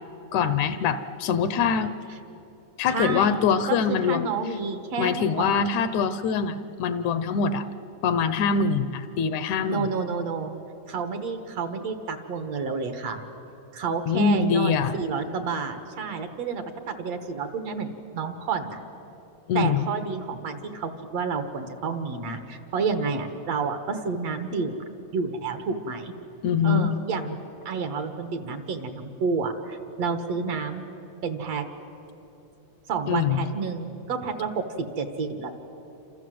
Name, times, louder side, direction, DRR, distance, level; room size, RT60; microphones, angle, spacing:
voice 1, 0.3-1.9 2.8-4.3 5.0-7.7 8.0-9.9 14.1-14.9 19.5-19.8 26.4-26.9 33.1-33.4, left 6 dB, 75° left, 11 dB, 2.2 m, -23 dB
voice 2, 2.9-5.6 9.7-10.5 10.9-13.2 13.7-18.8 19.5-24.8 25.1-26.1 26.6-27.4 27.7-30.8 31.2-31.6 32.9-34.6 35.0-35.5, right 5 dB, 60° right, 7 dB, 2.5 m, -30 dB
28.5 x 27.0 x 7.7 m, 3.0 s
omnidirectional pair, 3.5 m